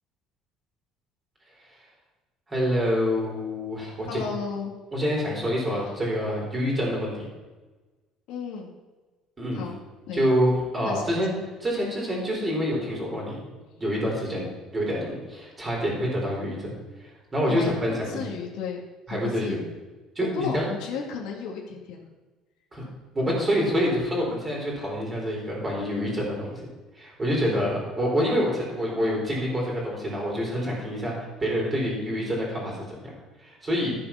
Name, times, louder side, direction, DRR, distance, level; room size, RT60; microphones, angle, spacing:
voice 1, 2.5-4.2 4.9-7.2 9.4-9.7 10.1-11.3 11.6-13.5 13.8-16.7 17.0-18.2 19.1-19.6 20.2-20.7 22.7-22.8 23.1-26.6 26.9-33.1 33.4-34.0, equal, 15° right, -3 dB, 3.8 m, -27 dB
voice 2, 4.1-4.7 8.3-8.7 9.5-9.7 10.1-10.3 10.8-11.2 17.5-17.7 18.1-18.8 19.1-19.7 20.2-22.0 23.3-23.6 27.5-27.7, left 6 dB, 75° left, -1 dB, 2.1 m, -34 dB
13.0 x 6.8 x 5.8 m, 1.2 s
cardioid pair, 170°, 0 cm